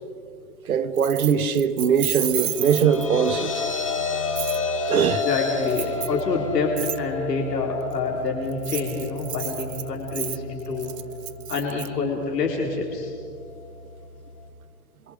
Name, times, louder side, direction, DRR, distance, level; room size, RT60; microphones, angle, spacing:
voice 1, 0.7-3.6 4.9-5.2, right 7 dB, 60° right, 1.4 m, -21 dB
Keys jangling, 1.0-3.3 4.4-4.6 5.7-6.2 6.8-7.0 8.5-11.9, right 11 dB, 80° right, 0.9 m, -31 dB
sound 1, 2.1-14.5, left 4 dB, 20° left, 0.8 m, -32 dB
voice 2, 5.1-10.9 11.5-13.1, left 4 dB, 85° left, 4.2 m, -27 dB
29.0 x 24.0 x 5.2 m
hypercardioid pair, 180°, 47 cm